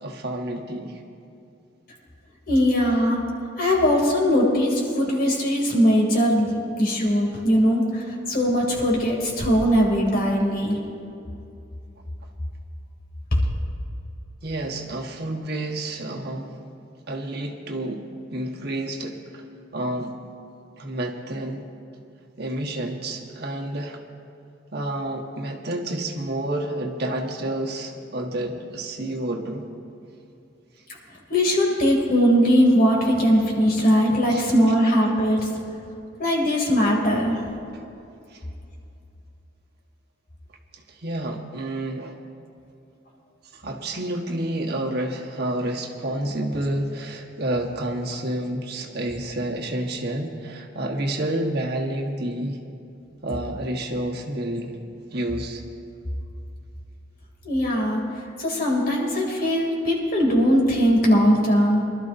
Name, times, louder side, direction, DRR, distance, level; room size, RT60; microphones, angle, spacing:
voice 1, 0.0-1.0 14.4-16.6 17.1-18.0 18.3-19.4 19.7-20.1 20.8-21.7 22.4-24.0 24.7-29.7 34.3-34.4 37.7-37.8 38.3-38.4 40.7-42.2 43.5-52.6 53.2-54.8 55.1-55.6, right 1 dB, 60° right, 1 dB, 1.3 m, -29 dB
voice 2, 2.5-3.2 3.6-10.8 31.3-35.5 36.2-37.4 57.4-58.0 58.4-61.9, equal, 55° left, -1 dB, 2.8 m, -20 dB
24.0 x 12.5 x 2.7 m, 2.6 s
head